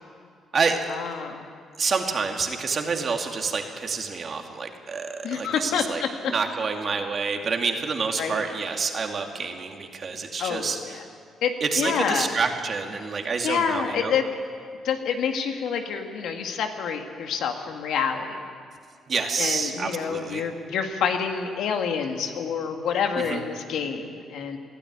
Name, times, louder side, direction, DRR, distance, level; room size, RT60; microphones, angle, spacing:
voice 1, 0.9-1.5 5.2-6.3 8.2-8.4 10.4-10.8 11.4-11.5 11.8-12.3 13.4-14.3 14.8-18.4 19.4-24.6, left 7 dB, 80° left, 4 dB, 2.0 m, -27 dB
voice 2, 1.8-11.0 11.6-14.1 19.1-20.4 23.2-23.4, right 5 dB, 45° right, 3 dB, 2.5 m, -28 dB
21.0 x 13.5 x 9.8 m, 2.2 s
cardioid pair, 90°, 0 cm